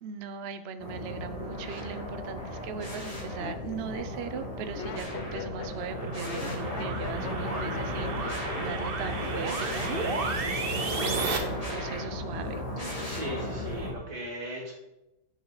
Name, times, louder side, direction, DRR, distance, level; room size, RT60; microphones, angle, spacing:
voice 1, 0.0-12.6, right 6 dB, 80° right, 10 dB, 0.5 m, -39 dB
sound 1, 0.8-13.9, left 1 dB, 20° left, 2.1 m, -36 dB
Laughter, 3.2-9.6 9.9-10.4, left 7 dB, 70° left, 0.6 m, -41 dB
sound 2, 4.9-11.4, right 3 dB, 40° right, 1.0 m, -33 dB
voice 2, 13.0-14.7, equal, 60° right, -1 dB, 2.4 m, -38 dB
10.0 x 6.4 x 4.0 m, 0.97 s
omnidirectional pair, 1.9 m